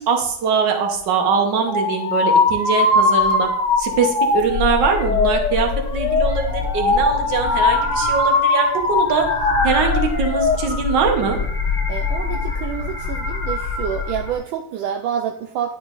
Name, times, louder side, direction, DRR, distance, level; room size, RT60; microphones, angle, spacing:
voice 1, 0.0-3.5 3.8-9.3 9.6-11.4, right 5 dB, 65° right, 3 dB, 1.6 m, -22 dB
sound 1, 1.7-10.6, left 3 dB, 50° left, 1.1 m, -20 dB
sound 2, 3.2-3.3 3.7-4.0 4.3-8.4 8.7-14.4, left 4 dB, 25° left, 1.0 m, -25 dB
voice 2, 11.9-15.8, right 9 dB, 80° right, 3 dB, 1.3 m, -28 dB
10.0 x 5.1 x 2.5 m, 0.72 s
omnidirectional pair, 2.2 m